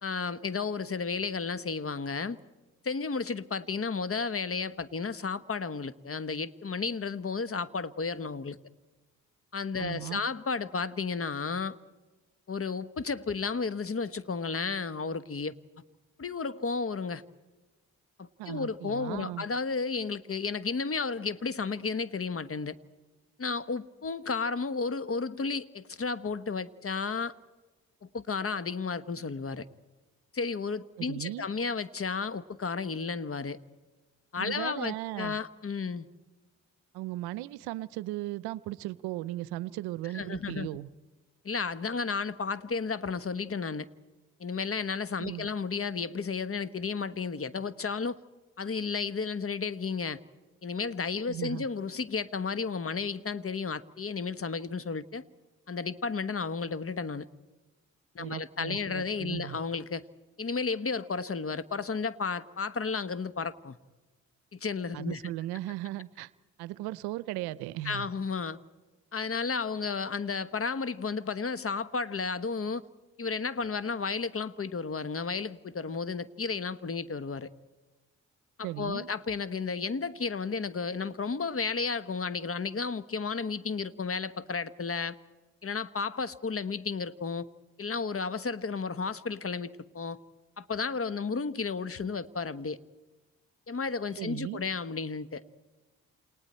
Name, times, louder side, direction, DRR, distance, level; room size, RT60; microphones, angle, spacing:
voice 1, 0.0-2.4 2.8-8.6 9.5-11.8 12.5-15.6 16.2-17.2 18.2-22.7 23.4-27.3 28.0-29.7 30.3-33.6 34.3-36.1 40.1-40.7 41.4-43.9 44.4-48.2 48.6-50.2 50.6-55.2 55.7-57.3 58.1-60.0 60.4-63.8 64.5-65.2 67.8-68.6 69.1-72.8 73.2-77.5 78.6-85.2 85.6-87.5 87.8-90.2 90.6-92.8 93.7-95.4, left 5 dB, 35° left, 15 dB, 1.3 m, -33 dB
voice 2, 9.8-10.2 18.4-19.5 31.0-31.5 34.4-35.4 36.9-40.9 45.2-45.5 51.3-51.7 58.2-59.6 64.9-66.3 66.6-68.1 78.6-79.1 94.2-94.6, right 16 dB, 80° right, 20 dB, 0.7 m, -37 dB
29.0 x 28.5 x 4.4 m, 1.2 s
hypercardioid pair, 45°, 38 cm